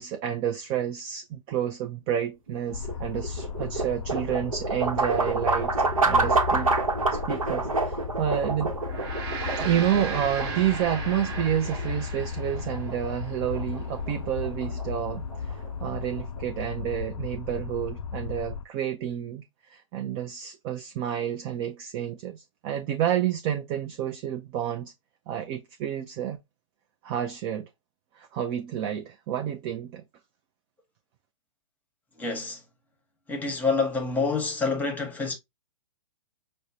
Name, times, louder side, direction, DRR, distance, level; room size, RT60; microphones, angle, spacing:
voice 1, 0.0-5.8 6.1-6.7 7.1-8.8 9.6-24.9 25.3-26.4 27.0-27.7 28.1-30.0, right 10 dB, 25° right, 0.4 m, -30 dB
sound 1, 2.5-16.6, right 3 dB, 85° right, 0.9 m, -29 dB
sound 2, 2.7-18.6, left 6 dB, 70° left, 0.4 m, -35 dB
Gong, 8.7-13.4, right 5 dB, 45° right, 0.9 m, -37 dB
voice 2, 32.1-32.6 33.3-35.3, left 4 dB, 10° left, 0.9 m, -27 dB
5.3 x 2.1 x 2.6 m
figure-of-eight pair, 115°, 17 cm